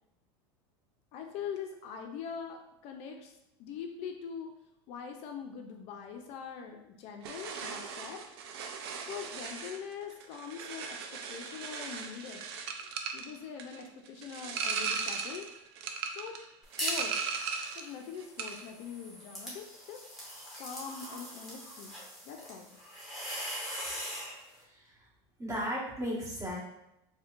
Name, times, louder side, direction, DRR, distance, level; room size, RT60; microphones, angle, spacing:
voice 1, 1.1-4.5 4.9-8.2 9.0-12.4 13.1-15.5 16.1-16.3 16.8-17.2 17.7-20.0 20.6-22.0 22.2-22.7, left 7 dB, 55° left, 4 dB, 0.4 m, -43 dB
sound 1, 7.2-17.9 18.2-18.7, right 5 dB, 85° right, 0.4 m, -38 dB
sound 2, 16.6-17.1 17.5-24.4, equal, ahead, 1.1 m, -41 dB
voice 2, 24.6-25.1 25.4-26.6, equal, 20° right, -7 dB, 1.4 m, -36 dB
4.2 x 2.1 x 2.5 m, 0.86 s
supercardioid pair, 120°, 13 cm